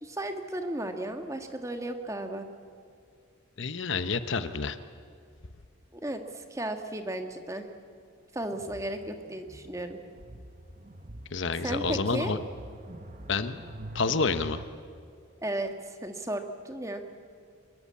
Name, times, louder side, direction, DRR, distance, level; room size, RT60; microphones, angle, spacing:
voice 1, 0.0-2.4 5.9-7.7 8.3-10.0 11.6-12.3 15.4-17.0, right 1 dB, 15° right, 6 dB, 1.6 m, -34 dB
voice 2, 3.6-4.8 11.3-12.4 13.3-13.6 13.9-14.6, left 4 dB, 60° left, 11 dB, 1.0 m, -28 dB
sound 1, 8.5-14.6, right 1 dB, 35° right, 1.1 m, -45 dB
25.5 x 21.5 x 8.5 m, 2.2 s
head